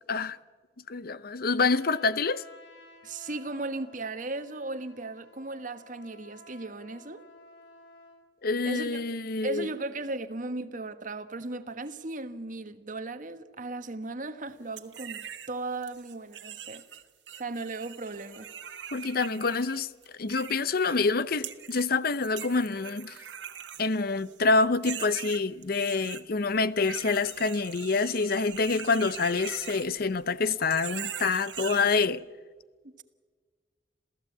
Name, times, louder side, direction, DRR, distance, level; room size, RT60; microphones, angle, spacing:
voice 1, 0.9-2.4 8.4-9.7 18.9-19.9 20.1-23.2 23.8-32.2, left 4 dB, 55° left, 0.7 m, -27 dB
Trumpet, 1.6-8.2, left 1 dB, 70° left, 6.1 m, -54 dB
voice 2, 3.0-7.2 8.6-9.0 9.4-16.8 17.3-18.5 32.8-33.0, right 2 dB, 45° right, 1.4 m, -36 dB
sound 1, 14.8-15.5 15.8-21.1 21.4-21.9 22.2-24.4 24.7-26.2 26.8-30.2 30.5-32.1, right 9 dB, 80° right, 1.6 m, -42 dB
27.5 x 16.0 x 8.6 m
head